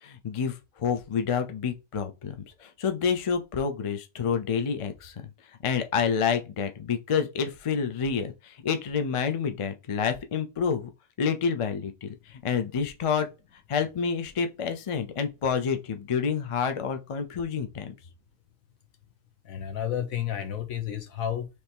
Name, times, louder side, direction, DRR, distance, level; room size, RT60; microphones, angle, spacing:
voice 1, 0.0-5.1 5.6-10.9 11.2-13.3 13.7-17.9, left 6 dB, 50° left, 0.3 m, -28 dB
voice 2, 19.4-21.5, left 10 dB, 75° left, 1.3 m, -31 dB
3.5 x 3.0 x 4.3 m
omnidirectional pair, 1.5 m